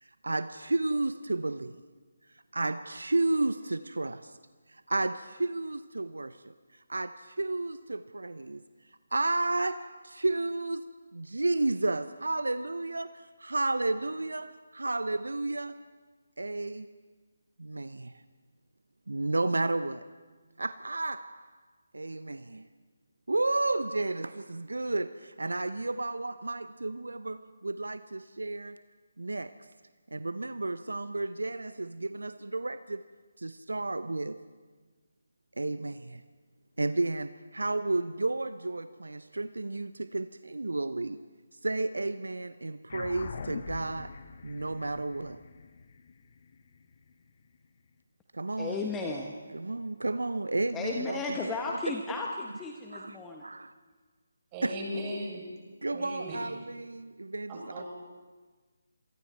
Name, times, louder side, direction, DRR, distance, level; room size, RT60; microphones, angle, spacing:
voice 1, 0.0-1.9 2.5-4.4 4.7-8.6 9.1-15.9 16.4-16.9 17.6-18.2 19.1-20.1 20.6-21.6 21.9-22.7 23.3-28.8 29.2-29.7 30.1-33.1 33.4-34.5 35.6-36.2 36.8-41.2 41.5-44.1 44.4-45.4 48.3-48.8 49.5-51.8 52.9-53.2 53.4-53.7 54.6-54.7 55.8-57.8, right 2 dB, 75° right, 13 dB, 0.7 m, -32 dB
sound 1, 42.9-47.7, left 5 dB, 45° left, 1.3 m, -44 dB
voice 2, 48.6-49.4 50.7-53.4, left 3 dB, 10° left, 0 dB, 1.3 m, -34 dB
voice 3, 54.5-55.4 55.9-56.4 57.5-57.9, equal, 20° right, -3 dB, 7.3 m, -37 dB
27.0 x 24.0 x 4.4 m, 1.4 s
figure-of-eight pair, 150°, 0 cm